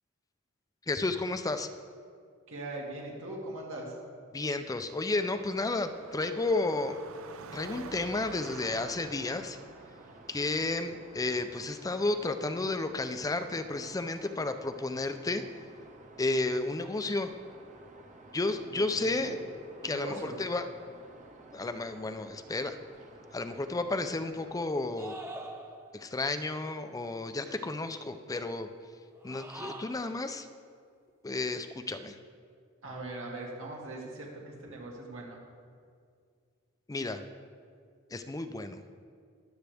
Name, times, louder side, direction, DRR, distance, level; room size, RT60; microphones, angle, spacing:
voice 1, 0.9-1.7 4.3-7.0 7.5-9.6 10.3-15.4 16.2-17.3 18.3-19.4 19.8-20.7 21.5-22.8 23.3-25.2 25.9-28.7 29.2-30.5 31.2-32.2 36.9-37.2 38.1-38.8, left 2 dB, 15° left, 9 dB, 0.5 m, -32 dB
voice 2, 2.5-3.9 18.6-18.8 19.1-19.4 19.8-20.4 32.8-35.4, right 2 dB, 70° right, -2 dB, 2.5 m, -40 dB
Car passing by / Traffic noise roadway noise / Engine, 5.1-12.4, right 4 dB, 85° right, 0.6 m, -49 dB
sound 1, 8.4-24.7, right 2 dB, 35° right, 1.1 m, -53 dB
sound 2, 25.0-26.1 29.2-30.2, right 2 dB, 10° right, 0.9 m, -44 dB
22.0 x 8.0 x 3.4 m, 2.1 s
head